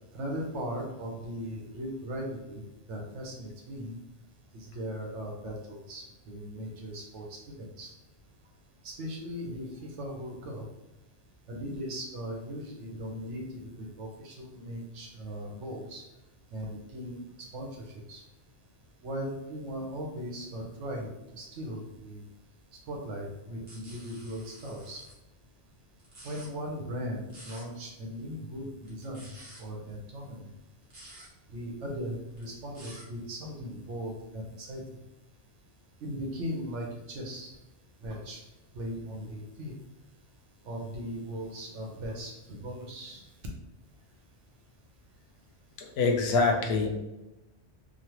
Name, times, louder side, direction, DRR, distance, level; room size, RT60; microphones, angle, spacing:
voice 1, 0.1-4.0 4.5-7.9 8.8-10.7 11.5-16.0 16.5-18.2 19.0-22.2 22.9-25.0 26.2-30.5 31.5-34.8 36.0-37.6 38.0-38.4 38.7-39.7 40.6-43.3, equal, 80° right, 0 dB, 1.0 m, -38 dB
sound 1, 23.7-25.1 26.0-26.5 27.3-27.6 28.8-29.6 30.8-31.3 32.3-33.0, right 1 dB, 45° right, 1.1 m, -50 dB
voice 2, 45.8-46.9, left 4 dB, 65° left, 3 dB, 0.8 m, -25 dB
3.1 x 2.1 x 2.9 m, 0.95 s
omnidirectional pair, 1.2 m